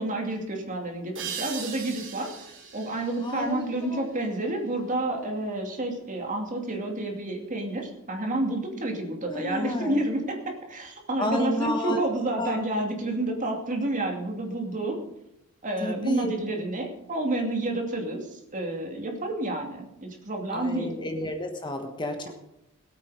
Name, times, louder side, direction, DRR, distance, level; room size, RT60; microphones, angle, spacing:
voice 1, 0.0-2.3 2.7-15.0 15.6-20.9, right 1 dB, 35° right, 2 dB, 2.5 m, -29 dB
sound 1, 1.1-4.5, right 6 dB, 60° right, 3.5 m, -40 dB
voice 2, 3.2-4.0 9.3-10.0 11.2-12.0 12.4-12.6 15.8-16.4 20.5-22.3, left 1 dB, 20° left, 5 dB, 1.3 m, -31 dB
20.0 x 8.9 x 5.0 m, 0.86 s
head